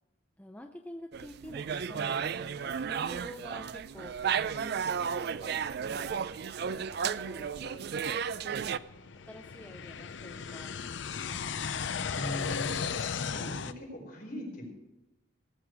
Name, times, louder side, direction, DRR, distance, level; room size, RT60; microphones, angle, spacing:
voice 1, 0.4-4.2 4.5-5.6 5.9-6.2 7.0-8.8 9.3-10.8 11.1-11.7, left 1 dB, 10° left, 4 dB, 0.5 m, -49 dB
sound 1, 1.1-8.8, right 7 dB, 55° right, 0.4 m, -33 dB
sound 2, 5.0-5.1 5.6-5.7 6.3-13.7, left 6 dB, 65° left, 0.5 m, -36 dB
voice 2, 12.1-12.8 13.3-14.7, left 1 dB, 50° left, -2 dB, 5.0 m, -40 dB
17.5 x 8.1 x 4.7 m, 0.96 s
head